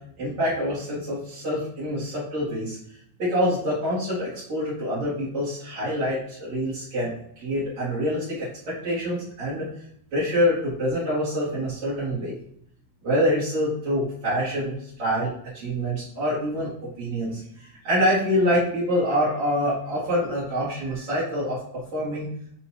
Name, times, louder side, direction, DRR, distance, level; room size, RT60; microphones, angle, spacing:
voice 1, 0.2-2.8 3.2-7.1 7.4-9.7 10.1-12.4 13.0-16.7 17.0-21.6 21.9-22.3, equal, 55° right, -8 dB, 4.1 m, -26 dB
10.0 x 4.1 x 3.0 m, 0.68 s
omnidirectional pair, 3.7 m